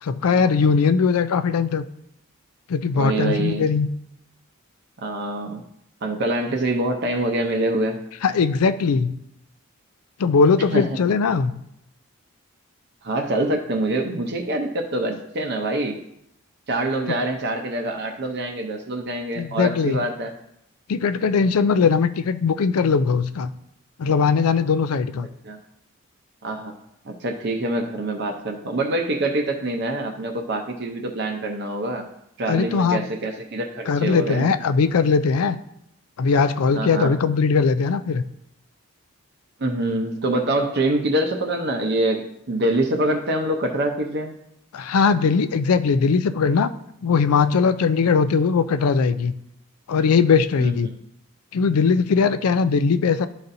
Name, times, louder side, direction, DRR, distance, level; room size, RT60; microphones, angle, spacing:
voice 1, 0.0-1.8 2.7-3.9 8.2-9.1 10.2-11.5 17.1-17.2 19.4-20.0 20.9-23.5 24.0-25.3 32.5-33.0 33.9-35.6 36.2-38.2 44.7-46.7 47.0-49.3 49.9-50.9 51.5-53.3, left 5 dB, 80° left, 12 dB, 0.4 m, -20 dB
voice 2, 2.9-3.7 5.0-5.6 6.0-8.0 10.7-10.8 13.0-16.0 16.7-20.3 25.4-25.6 26.4-26.7 27.0-32.1 32.4-34.5 36.7-37.1 39.6-44.4 50.6-51.0, right 1 dB, 50° right, 2 dB, 0.6 m, -25 dB
11.5 x 4.1 x 2.6 m, 0.79 s
head